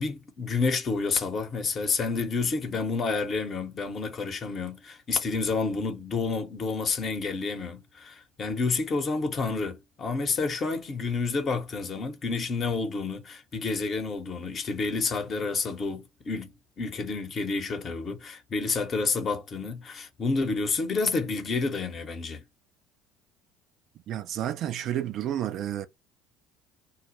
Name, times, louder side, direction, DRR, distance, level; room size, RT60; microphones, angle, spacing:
voice 1, 0.0-22.4, left 4 dB, 40° left, 0.9 m, -29 dB
voice 2, 24.1-25.9, right 11 dB, 55° right, 0.4 m, -30 dB
2.2 x 2.1 x 3.1 m
figure-of-eight pair, 60°, 0 cm